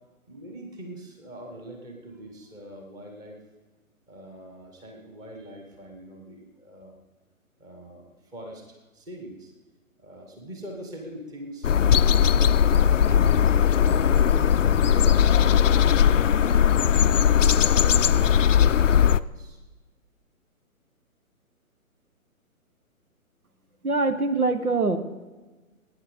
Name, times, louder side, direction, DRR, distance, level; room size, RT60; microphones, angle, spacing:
voice 1, 0.3-3.4 4.1-7.0 7.6-9.5 10.0-13.3 13.7-16.8 17.1-19.6, equal, 10° right, 2 dB, 1.3 m, -43 dB
sound 1, 11.6-19.2, left 8 dB, 60° left, 0.5 m, -19 dB
voice 2, 23.8-25.0, right 3 dB, 80° right, 10 dB, 1.5 m, -23 dB
19.0 x 9.5 x 5.1 m, 1.2 s
figure-of-eight pair, 135°, 43 cm